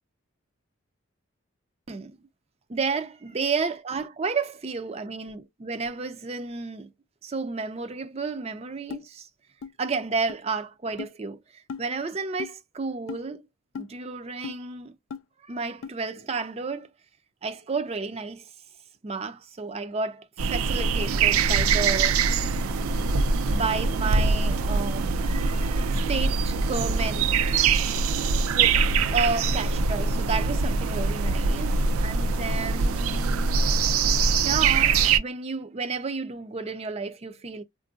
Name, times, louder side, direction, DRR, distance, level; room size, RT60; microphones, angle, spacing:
voice 1, 1.9-2.2 2.7-6.9 7.2-9.3 9.8-13.5 13.8-15.0 15.4-16.9 17.4-18.5 19.0-22.2 22.8-23.1 23.5-27.8 28.5-33.6 34.4-37.6, right 4 dB, 30° right, 0.4 m, -32 dB
sound 1, 8.9-9.0 9.6-9.7 10.3-10.4 11.0-11.1 11.7-11.8 12.4-12.5 13.1-13.2 13.7-13.9 14.4-14.6 15.1-15.2 15.8-15.9, left 5 dB, 70° left, 0.3 m, -36 dB
sound 2, 20.4-35.2, right 4 dB, 90° right, 0.4 m, -23 dB
3.6 x 2.5 x 2.3 m
head